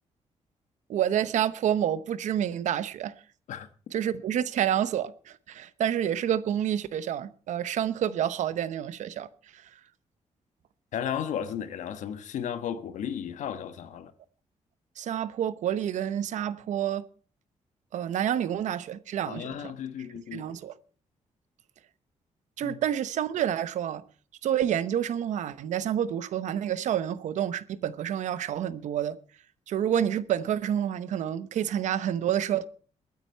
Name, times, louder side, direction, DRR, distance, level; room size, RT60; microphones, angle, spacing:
voice 1, 0.9-3.1 3.9-9.7 15.0-17.0 17.9-19.7 20.3-20.7 22.6-24.0 24.4-29.2 29.7-32.7, right 10 dB, 85° right, 1.0 m, -28 dB
voice 2, 10.9-14.1 19.3-20.4 22.6-22.8, left 9 dB, 90° left, 1.3 m, -34 dB
21.5 x 9.1 x 4.5 m
wide cardioid pair, 150°, 12 cm